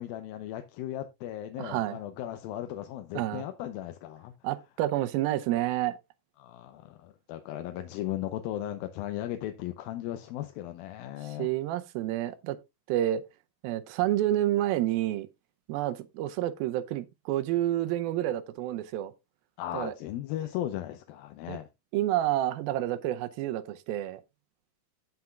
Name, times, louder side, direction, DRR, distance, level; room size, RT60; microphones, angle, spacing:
voice 1, 0.0-4.3 6.4-11.5 19.6-21.7, left 13 dB, 80° left, 2.4 m, -36 dB
voice 2, 1.6-2.0 3.1-3.5 4.4-6.0 11.2-12.6 12.9-13.2 13.6-15.3 15.7-19.1 19.7-19.9 21.5-21.6 21.9-24.2, right 13 dB, 80° right, 2.4 m, -29 dB
17.0 x 5.8 x 2.3 m
omnidirectional pair, 4.3 m